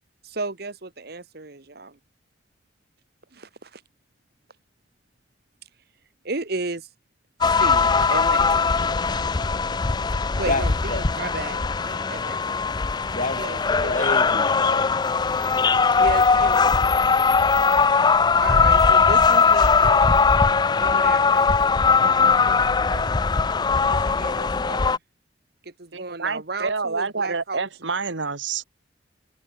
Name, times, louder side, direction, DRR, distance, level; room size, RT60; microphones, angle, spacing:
voice 1, 0.2-2.0 3.3-3.8 6.2-6.9 7.4-8.4 10.3-12.6 13.4-14.1 15.1-15.5 16.0-17.0 18.3-20.3 20.8-21.6 21.9-23.1 23.9-25.0 25.6-27.7, right 3 dB, 55° right, 1.6 m, -34 dB
sound 1, 7.4-25.0, left 5 dB, 25° left, 0.4 m, -20 dB
voice 2, 10.1-11.0 12.0-12.2 12.7-16.0 17.1-18.0, left 2 dB, 45° left, 6.9 m, -32 dB
voice 3, 25.9-28.6, right 4 dB, 80° right, 1.8 m, -28 dB
head